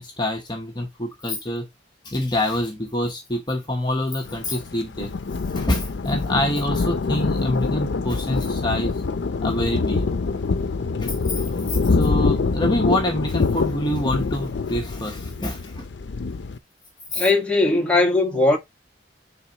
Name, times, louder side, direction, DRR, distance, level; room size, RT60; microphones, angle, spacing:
voice 1, 0.0-1.7 2.0-5.1 5.5-8.9 9.4-10.1 11.0-15.9 17.1-17.2, left 1 dB, 25° left, 1.0 m, -26 dB
Thunder, 4.3-16.6, left 4 dB, 85° left, 0.5 m, -25 dB
voice 2, 17.1-18.6, left 2 dB, 5° left, 1.4 m, -19 dB
9.5 x 3.9 x 2.9 m
head